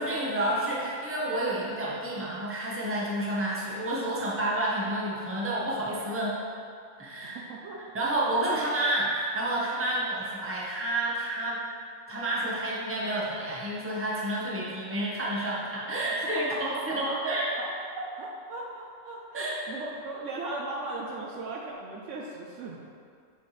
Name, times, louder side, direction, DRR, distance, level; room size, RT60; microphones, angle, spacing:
voice 1, 0.0-6.4 7.0-7.4 7.9-11.6 12.1-17.5 19.3-19.5, right 1 dB, 10° right, -6 dB, 0.9 m, -29 dB
voice 2, 7.3-7.8 16.5-16.6 17.0-17.1 17.6-22.9, right 2 dB, 65° right, -2 dB, 0.9 m, -38 dB
8.3 x 4.4 x 3.2 m, 2.3 s
omnidirectional pair, 1.5 m